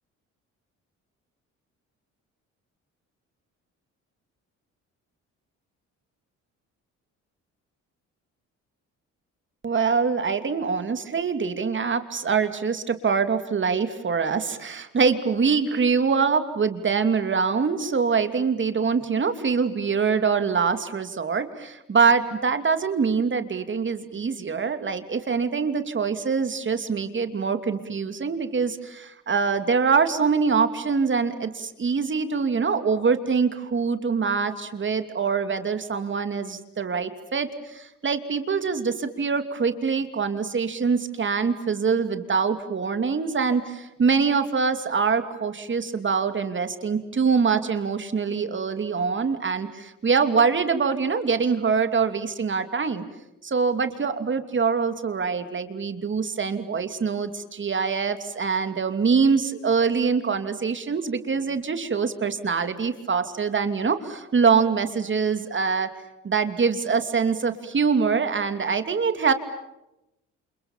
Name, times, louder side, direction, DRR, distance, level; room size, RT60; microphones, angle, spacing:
voice 1, 9.6-53.0 53.4-65.9 66.2-69.3, right 5 dB, 40° right, 9 dB, 2.8 m, -24 dB
28.5 x 28.0 x 7.3 m, 0.90 s
cardioid pair, 90°, 30 cm